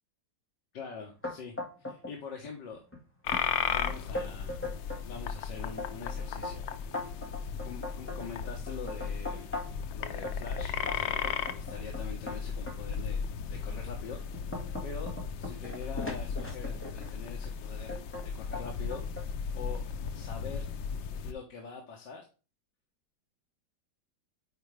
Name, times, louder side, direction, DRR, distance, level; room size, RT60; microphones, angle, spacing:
voice 1, 0.7-2.8 3.5-4.7 5.1-6.6 6.9-7.3 7.6-9.5 9.9-14.2 14.8-19.8 20.1-20.7 21.2-22.3, left 5 dB, 70° left, 0 dB, 1.9 m, -44 dB
sound 1, 1.2-2.2 2.4-3.0 3.3-3.4 3.9-5.1 5.5-9.9 10.2-12.8 13.4-13.5 14.0-17.1 17.9-18.3 18.5-19.3, left 2 dB, 5° left, 1.7 m, -39 dB
sound 2, 3.2-21.3, left 6 dB, 90° left, 1.5 m, -36 dB
8.9 x 4.6 x 3.3 m, 0.34 s
omnidirectional pair, 2.0 m